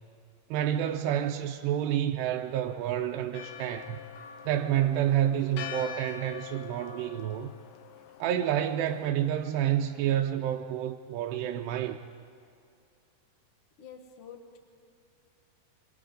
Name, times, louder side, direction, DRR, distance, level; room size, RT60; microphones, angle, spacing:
voice 1, 0.5-4.0 4.5-7.5 8.2-12.0, right 11 dB, 85° right, 2.8 m, -29 dB
Church bell, 3.3-9.1, left 9 dB, 90° left, 3.1 m, -44 dB
voice 2, 13.8-14.6, left 6 dB, 60° left, 1.5 m, -48 dB
26.5 x 26.0 x 3.8 m
omnidirectional pair, 4.8 m